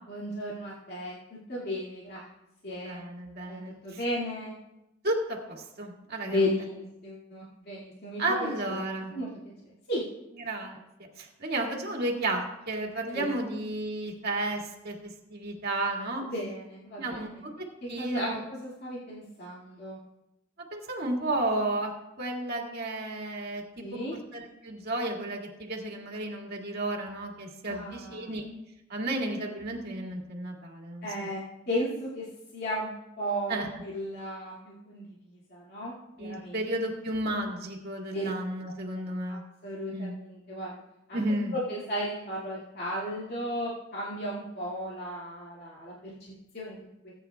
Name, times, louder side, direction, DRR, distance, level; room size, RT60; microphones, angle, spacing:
voice 1, 0.1-2.3 2.6-3.0 3.5-4.5 6.2-8.8 9.1-9.3 9.9-10.0 13.1-13.3 16.2-17.4 17.8-20.0 23.8-24.2 27.7-28.3 31.0-36.7 38.1-38.3 39.3-40.7 41.1-41.2 41.5-47.1, equal, 50° left, -6 dB, 2.2 m, -35 dB
voice 2, 2.8-3.7 5.0-5.4 5.8-6.4 8.2-9.1 10.4-10.8 11.2-16.2 17.0-17.5 17.9-18.4 20.7-21.9 22.2-23.8 24.3-28.4 28.9-31.1 33.5-33.7 36.2-39.4 39.9-40.1 41.1-41.5, right 2 dB, 50° right, -1 dB, 2.1 m, -32 dB
19.5 x 9.2 x 2.3 m, 0.90 s
head